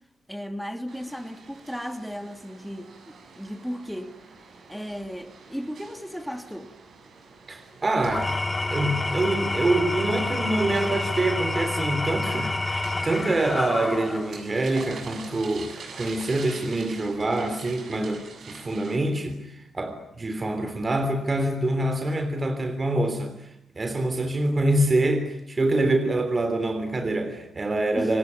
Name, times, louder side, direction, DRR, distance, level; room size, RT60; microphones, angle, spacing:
voice 1, 0.3-4.2 4.7-6.7 27.9-28.2, equal, ahead, 3.0 m, -35 dB
sound 1, 0.9-19.0, right 4 dB, 65° right, 7.2 m, -46 dB
voice 2, 7.5-8.3 8.7-28.2, right 2 dB, 35° right, 3.5 m, -26 dB
Engine / Tools, 8.0-14.4, left 2 dB, 20° left, 2.8 m, -28 dB
27.5 x 18.5 x 9.6 m
cardioid pair, 65°, 0 cm